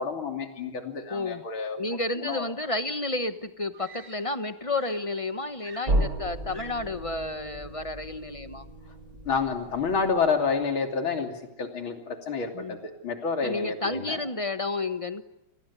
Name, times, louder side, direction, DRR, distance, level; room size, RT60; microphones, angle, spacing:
voice 1, 0.0-1.8 2.2-2.4 9.3-11.3 11.6-14.2, left 5 dB, 75° left, 5 dB, 3.8 m, -29 dB
voice 2, 1.1-1.4 1.8-8.7 12.5-12.8 13.4-15.2, left 2 dB, 25° left, 11 dB, 0.8 m, -31 dB
Screaming, 2.9-3.0 3.7-4.5 4.7-7.0 8.0-8.3, right 3 dB, 20° right, 3.9 m, -51 dB
sound 1, 5.9-10.5, right 1 dB, 45° right, 3.7 m, -33 dB
29.0 x 20.5 x 9.9 m, 0.90 s
omnidirectional pair, 2.2 m